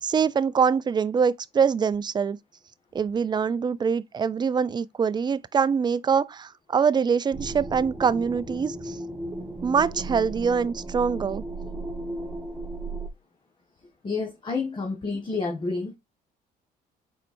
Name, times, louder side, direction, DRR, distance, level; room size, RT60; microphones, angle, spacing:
voice 1, 0.0-2.4 2.9-9.0 9.6-11.4, right 6 dB, 25° right, 0.4 m, -24 dB
sound 1, 7.3-13.1, right 2 dB, 10° right, 1.4 m, -35 dB
voice 2, 14.0-15.9, left 4 dB, 30° left, 1.5 m, -29 dB
5.7 x 4.5 x 4.3 m
cardioid pair, 110°, 17 cm